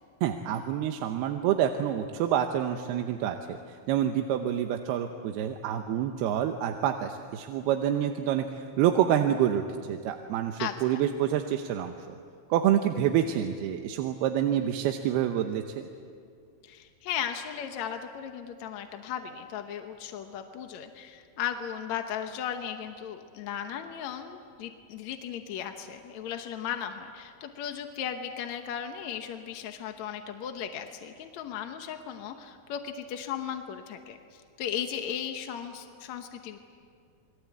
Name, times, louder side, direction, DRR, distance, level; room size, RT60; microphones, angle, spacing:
voice 1, 0.2-3.6 3.9-9.6 9.9-12.2 12.5-15.9, right 10 dB, 85° right, 5 dB, 2.9 m, -27 dB
voice 2, 10.6-11.0 16.6-36.6, left 9 dB, 65° left, 6 dB, 1.8 m, -36 dB
29.0 x 22.0 x 8.3 m, 2.3 s
omnidirectional pair, 4.5 m